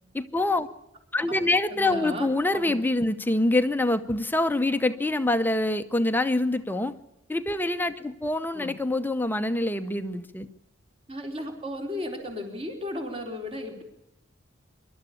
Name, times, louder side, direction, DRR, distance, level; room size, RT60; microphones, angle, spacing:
voice 1, 0.1-0.7 1.1-6.9 7.3-10.5, left 2 dB, 10° left, 9 dB, 0.7 m, -25 dB
voice 2, 1.7-2.7 8.5-8.8 11.1-13.8, left 1 dB, 30° right, 3 dB, 3.8 m, -35 dB
25.0 x 12.5 x 8.4 m, 0.88 s
head